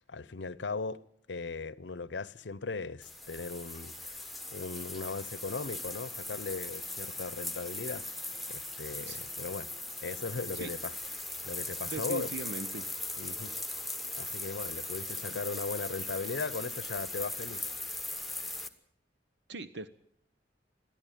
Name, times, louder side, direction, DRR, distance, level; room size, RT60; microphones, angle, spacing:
voice 1, 0.1-1.0 1.3-4.2 4.5-8.0 8.5-9.7 10.0-10.9 11.4-12.3 13.2-13.5 14.1-17.7, left 4 dB, 85° left, 0.7 m, -38 dB
sound 1, 3.0-18.7, left 2 dB, ahead, 1.3 m, -39 dB
voice 2, 11.9-12.9 19.5-19.9, right 3 dB, 75° right, 0.9 m, -40 dB
21.5 x 14.5 x 9.1 m
head